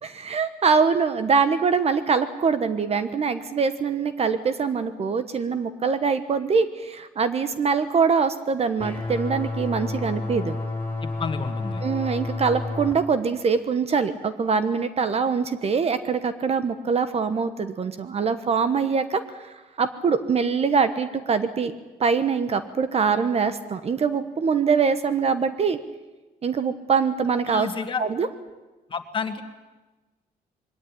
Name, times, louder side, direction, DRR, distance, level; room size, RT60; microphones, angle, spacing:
voice 1, 0.0-10.6 11.8-19.2 19.8-21.7 22.0-25.8 26.4-27.7 28.0-28.3, right 5 dB, 40° right, 11 dB, 1.1 m, -23 dB
sound 1, 8.8-12.9, left 2 dB, 10° left, 4.8 m, -30 dB
voice 2, 11.0-11.9 27.5-28.0 28.9-29.4, left 5 dB, 30° left, 7 dB, 2.0 m, -30 dB
22.0 x 17.5 x 10.0 m, 1.2 s
cardioid pair, 120°, 16 cm